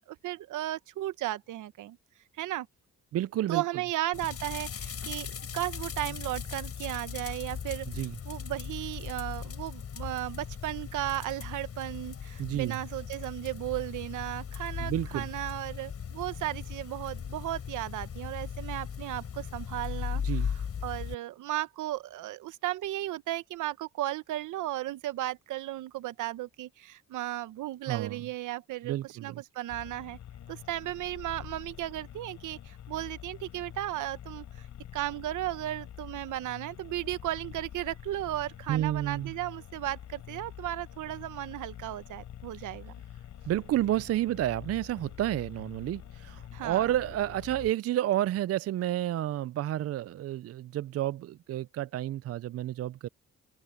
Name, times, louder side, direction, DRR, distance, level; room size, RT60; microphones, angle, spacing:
voice 1, 0.1-2.0 2.4-2.7 3.5-7.9 8.2-20.5 20.8-30.2 30.5-34.7 34.9-42.9 46.5-46.9, right 15 dB, 80° right, 1.1 m, -35 dB
voice 2, 3.1-3.6 7.9-8.2 12.4-12.8 14.8-15.3 20.2-20.5 27.9-28.2 28.8-29.4 38.7-39.3 42.5-42.6 43.4-53.1, right 13 dB, 55° right, 0.4 m, -30 dB
sound 1, 4.1-21.1, left 7 dB, 50° left, 5.5 m, -38 dB
sound 2, 29.7-47.7, left 10 dB, 65° left, 5.2 m, -46 dB
open air
cardioid pair, 90°, 30 cm